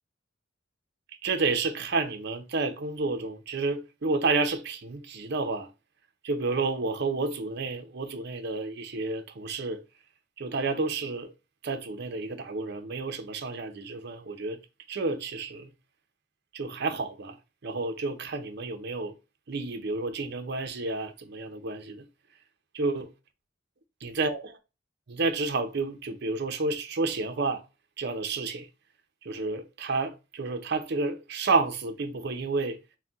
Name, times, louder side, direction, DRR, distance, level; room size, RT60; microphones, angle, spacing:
voice 1, 1.2-5.7 6.2-9.8 10.4-11.3 11.6-14.6 14.9-15.7 16.5-17.4 17.6-19.1 19.5-22.1 22.7-23.1 24.0-24.4 25.1-27.6 28.0-28.7 29.2-32.8, right 3 dB, 60° right, 0.6 m, -30 dB
4.1 x 2.2 x 3.5 m
head